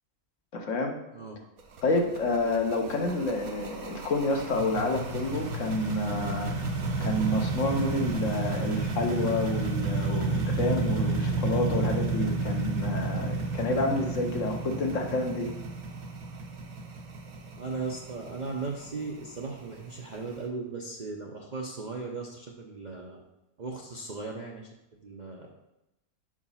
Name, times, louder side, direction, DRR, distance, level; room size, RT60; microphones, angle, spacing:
voice 1, 0.5-0.9 1.8-6.5 7.0-15.5, left 2 dB, 60° left, 3 dB, 1.1 m, -29 dB
sound 1, 1.6-20.4, right 3 dB, 75° right, 1.2 m, -31 dB
voice 2, 17.6-23.2 23.6-24.7 25.0-25.5, right 3 dB, 45° right, -1 dB, 0.6 m, -37 dB
5.0 x 4.9 x 5.5 m, 0.91 s
omnidirectional pair, 1.5 m